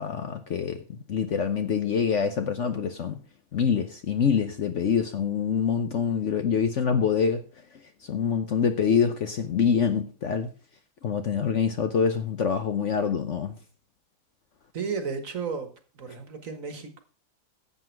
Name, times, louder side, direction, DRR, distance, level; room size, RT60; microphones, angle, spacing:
voice 1, 0.0-3.2 3.5-7.4 8.0-10.5 11.0-13.6, left 6 dB, 55° left, 0.9 m, -25 dB
voice 2, 14.7-15.7 15.9-17.0, right 5 dB, 55° right, 1.8 m, -33 dB
11.5 x 7.9 x 4.6 m
omnidirectional pair, 1.8 m